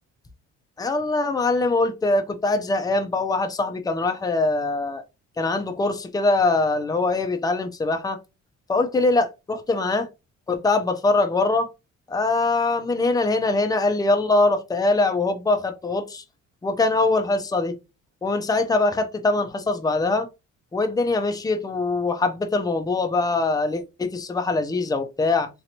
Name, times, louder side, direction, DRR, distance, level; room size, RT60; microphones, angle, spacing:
voice 1, 0.8-5.0 5.4-8.2 8.7-10.1 10.5-11.7 12.1-16.2 16.6-17.7 18.2-20.3 20.7-25.5, left 3 dB, 10° left, 0.6 m, -22 dB
3.1 x 2.9 x 2.7 m
cardioid pair, 90°, 30 cm